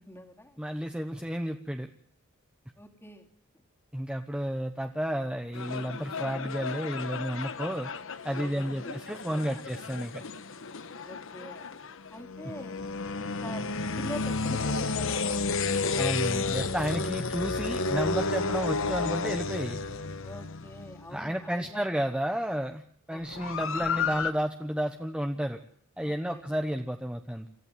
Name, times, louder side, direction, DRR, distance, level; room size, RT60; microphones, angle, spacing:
voice 1, 0.0-0.6 2.8-3.3 8.3-9.6 11.0-11.7 12.1-12.8 13.2-15.7 20.2-21.8 23.1-23.5 26.0-26.5, left 1 dB, 10° left, 3 dB, 2.7 m, -44 dB
voice 2, 0.6-1.9 3.9-7.9 8.2-10.2 16.0-19.8 21.1-22.8 23.1-25.6 26.0-27.5, equal, 5° right, 5 dB, 1.0 m, -32 dB
sound 1, 5.5-21.2 23.2-24.3, left 4 dB, 65° left, 1.3 m, -32 dB
27.0 x 14.5 x 9.2 m, 0.62 s
head